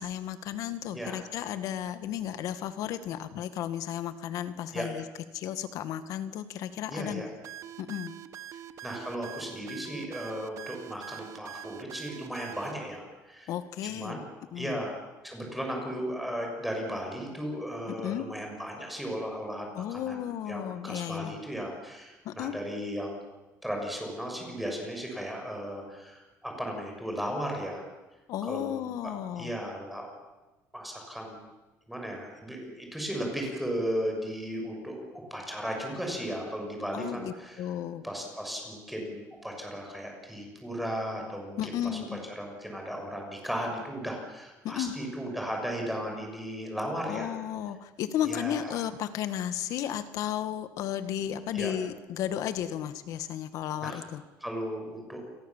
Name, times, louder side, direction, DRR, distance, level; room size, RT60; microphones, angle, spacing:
voice 1, 0.0-5.0 5.3-7.3 7.8-8.1 13.5-14.2 14.5-14.8 18.0-18.3 19.7-21.4 22.2-22.6 28.3-29.5 36.9-38.0 41.6-42.2 44.6-44.9 47.1-54.2, left 10 dB, 65° left, 11 dB, 2.0 m, -34 dB
voice 2, 6.9-7.3 8.8-13.5 13.8-14.2 14.5-20.2 20.5-23.2 23.6-27.9 28.4-28.8 29.4-30.1 30.7-31.4 31.9-37.6 38.0-42.0 42.4-47.4 48.2-48.8 51.5-51.7 53.8-54.0 54.4-55.2, equal, ahead, 1 dB, 6.7 m, -36 dB
sound 1, 7.4-12.7, right 11 dB, 55° right, 1.4 m, -43 dB
30.0 x 22.5 x 7.5 m, 1.1 s
cardioid pair, 155°, 6 cm